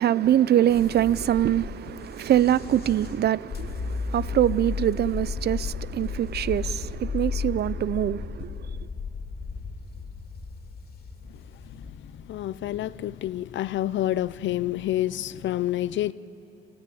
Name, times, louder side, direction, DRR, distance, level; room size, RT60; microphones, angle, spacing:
voice 1, 0.0-8.5, right 11 dB, 55° right, 0.5 m, -24 dB
sound 1, 0.7-14.9, left 5 dB, 50° left, 2.5 m, -35 dB
voice 2, 11.8-16.1, left 13 dB, 70° left, 0.6 m, -28 dB
28.5 x 15.5 x 8.6 m
cardioid pair, 90°, 20 cm